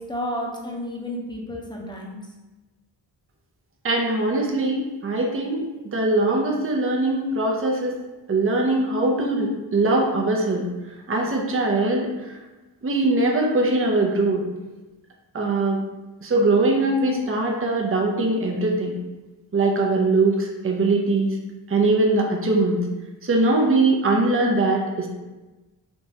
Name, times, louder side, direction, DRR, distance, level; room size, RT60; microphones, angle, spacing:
voice 1, 0.1-2.2, left 1 dB, 10° left, -2 dB, 0.8 m, -31 dB
voice 2, 3.8-8.0 8.3-12.4 12.8-14.5 15.3-15.8 16.2-19.0 19.5-21.4 21.7-22.9 23.2-25.1, right 2 dB, 30° right, 0 dB, 0.6 m, -21 dB
3.5 x 2.9 x 2.8 m, 1.1 s
cardioid pair, 40°, 46 cm